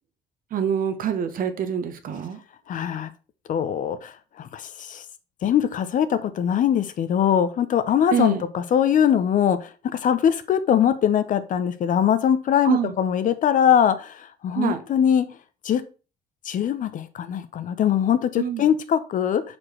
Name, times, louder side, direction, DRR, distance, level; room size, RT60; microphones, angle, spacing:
voice 1, 0.5-2.4 8.1-8.4 12.6-12.9 14.6-14.8 18.4-18.7, right 8 dB, 55° right, 9 dB, 1.0 m, -25 dB
voice 2, 2.7-3.1 3.5-4.1 4.4-5.0 5.4-9.7 10.0-15.3 15.6-15.8 16.5-19.4, left 9 dB, 50° left, 12 dB, 0.7 m, -22 dB
4.8 x 4.4 x 4.4 m, 0.34 s
cardioid pair, 110°, 17 cm